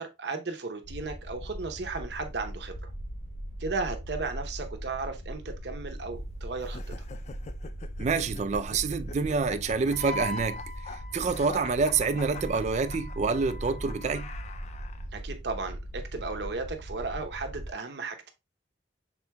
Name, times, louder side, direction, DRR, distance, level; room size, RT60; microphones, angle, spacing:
voice 1, 0.0-2.9 3.6-6.8 15.1-18.3, right 3 dB, 65° right, 0.8 m, -35 dB
sound 1, 0.8-17.7, equal, 75° left, 0.9 m, -40 dB
sound 2, 6.6-15.1, left 5 dB, 40° left, 0.3 m, -45 dB
voice 2, 8.0-10.6 11.1-14.3, right 4 dB, 40° right, 0.3 m, -27 dB
Wind instrument woodwind instrument, 9.9-14.6, left 1 dB, 5° left, 0.6 m, -42 dB
6.0 x 3.8 x 2.2 m
head